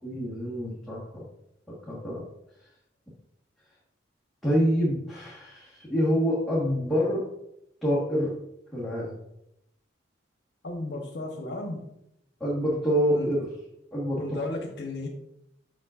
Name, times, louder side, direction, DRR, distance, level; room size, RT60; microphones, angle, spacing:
voice 1, 0.0-1.2 1.7-2.2 4.4-7.3 7.8-8.3 8.7-9.1 12.4-13.4 13.9-14.5, equal, ahead, -9 dB, 1.3 m, -26 dB
voice 2, 10.6-11.8 13.1-13.3 14.2-15.1, left 2 dB, 60° left, 2 dB, 1.0 m, -34 dB
7.4 x 6.1 x 2.4 m, 0.80 s
head